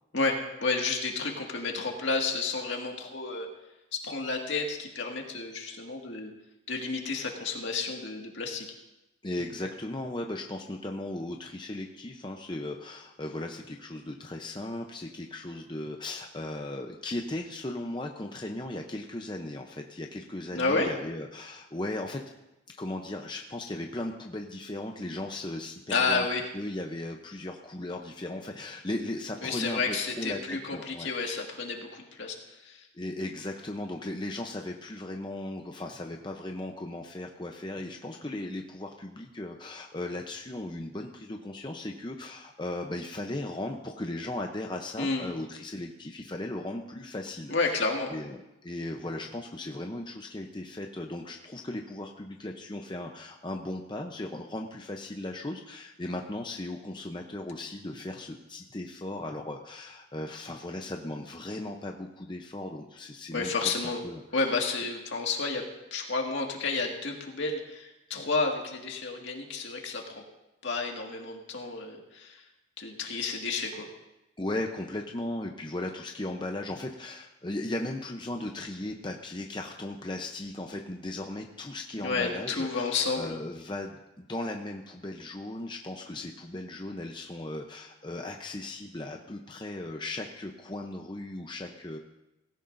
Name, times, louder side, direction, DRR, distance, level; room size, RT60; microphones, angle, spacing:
voice 1, 0.1-3.5 3.9-6.3 6.7-8.7 20.5-20.9 25.9-26.5 29.4-32.4 32.6-32.9 45.0-45.3 47.5-48.1 63.3-64.0 64.3-65.6 65.9-70.2 70.6-72.4 72.8-73.9 82.0-83.4, left 3 dB, 70° left, 1 dB, 2.0 m, -31 dB
voice 2, 9.2-22.2 22.8-26.3 26.5-30.4 30.7-31.1 32.9-47.7 48.1-64.5 74.4-92.0, left 1 dB, 25° left, 3 dB, 0.7 m, -37 dB
17.5 x 16.0 x 2.6 m, 0.96 s
head